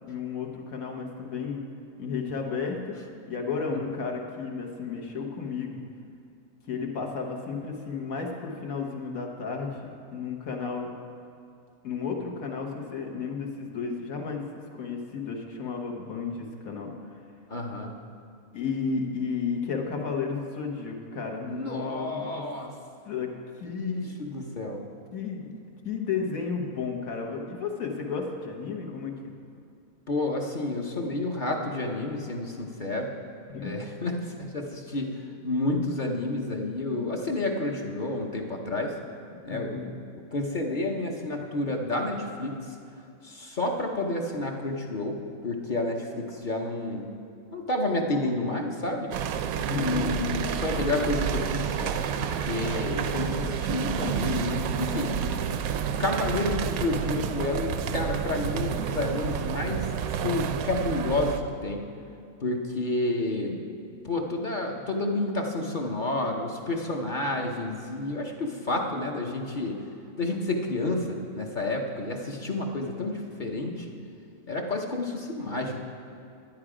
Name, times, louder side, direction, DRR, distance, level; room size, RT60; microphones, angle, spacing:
voice 1, 0.0-1.6 2.0-2.9 3.3-5.8 6.7-10.9 11.8-14.4 14.7-16.9 18.5-22.4 23.1-24.1 25.1-25.5 25.8-29.3 33.5-33.7 39.5-39.9 49.7-50.1, left 5 dB, 75° left, 1 dB, 1.6 m, -33 dB
voice 2, 17.5-17.9 21.5-22.7 23.6-24.8 30.1-33.1 33.6-38.9 39.4-39.8 40.3-42.7 43.2-45.2 45.4-47.0 47.5-49.4 49.8-55.1 55.7-61.8 62.4-63.6 64.0-69.8 70.2-73.9 74.5-75.8, left 2 dB, 40° left, 1 dB, 0.9 m, -30 dB
sound 1, 49.1-61.4, right 8 dB, 80° right, 1.0 m, -30 dB
10.5 x 9.9 x 4.9 m, 2.6 s
omnidirectional pair, 1.5 m